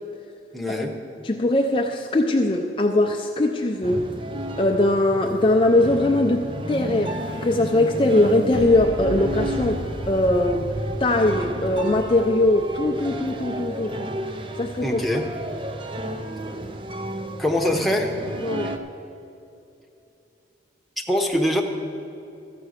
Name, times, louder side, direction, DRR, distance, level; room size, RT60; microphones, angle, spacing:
voice 1, 0.5-1.0 14.8-15.3 17.4-18.1 18.6-18.7 21.1-21.6, left 1 dB, ahead, 0 dB, 0.9 m, -23 dB
voice 2, 1.2-4.0 4.6-10.7 11.0-14.1 14.6-15.0 18.4-18.8, left 1 dB, 30° left, 3 dB, 0.5 m, -21 dB
sound 1, 3.8-18.8, right 1 dB, 30° right, 0.5 m, -32 dB
Boom, 8.5-14.4, equal, 80° right, 1.2 m, -37 dB
13.5 x 7.7 x 6.4 m, 2.8 s
head